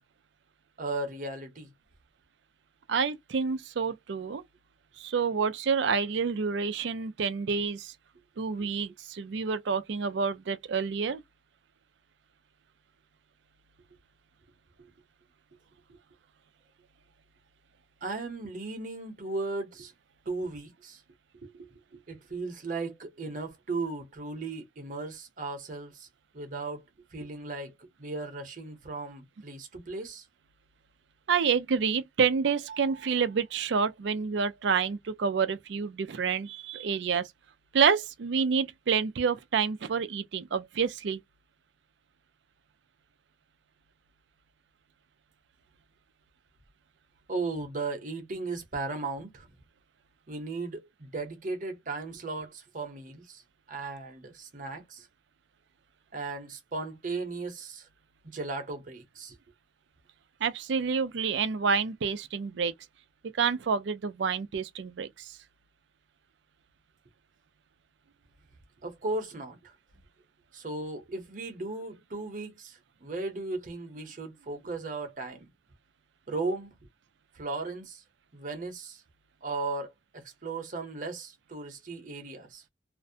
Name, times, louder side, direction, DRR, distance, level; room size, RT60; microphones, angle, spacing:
voice 1, 0.8-1.7 15.9-16.0 18.0-19.9 20.3-21.0 21.4-26.1 26.3-26.8 27.1-27.7 28.0-30.3 47.3-49.5 50.3-53.4 53.7-55.1 56.1-57.9 58.2-59.4 68.8-69.7 70.5-75.5 76.3-76.8 77.3-78.0 78.3-79.0 79.4-82.6, right 3 dB, 45° right, 0.8 m, -36 dB
voice 2, 2.9-4.4 5.0-7.9 8.4-11.2 31.3-37.3 37.7-41.2 60.4-62.7 63.4-65.4, right 6 dB, 75° right, 0.4 m, -28 dB
2.5 x 2.1 x 2.6 m
head